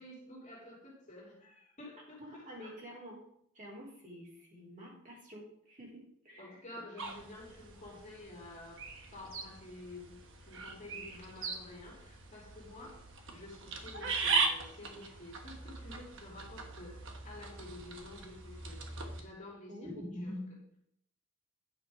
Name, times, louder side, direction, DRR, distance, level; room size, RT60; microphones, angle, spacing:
voice 1, 0.0-2.7 6.4-8.8 9.1-10.2 10.5-13.0 13.3-20.8, left 1 dB, 35° left, -3 dB, 2.7 m, -49 dB
voice 2, 2.2-3.2 3.5-5.9 6.2-6.6 19.7-20.0, equal, 35° right, -4 dB, 3.5 m, -49 dB
sound 1, 7.0-19.2, right 4 dB, 60° right, 1.3 m, -39 dB
9.4 x 6.1 x 4.8 m, 0.69 s
head